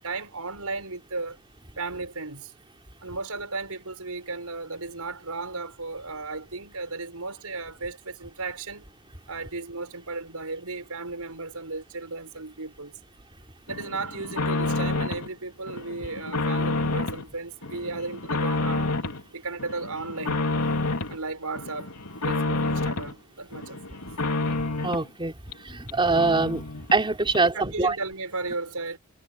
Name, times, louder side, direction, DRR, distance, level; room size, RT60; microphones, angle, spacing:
voice 1, 0.0-1.4 1.8-2.5 3.0-8.9 9.3-13.0 13.7-19.0 19.3-20.5 21.1-22.0 22.2-24.0 27.5-29.0, right 3 dB, 75° right, 6.7 m, -35 dB
sound 1, 13.7-15.3 15.7-17.2 17.6-19.2 19.6-21.2 21.5-23.1 23.5-25.1 25.5-25.6 25.9-26.0 26.1-27.0 27.3-27.4, left 2 dB, 80° left, 3.9 m, -29 dB
voice 2, 24.8-25.3 25.6-26.6 26.9-28.0, right 3 dB, 25° right, 4.0 m, -23 dB
head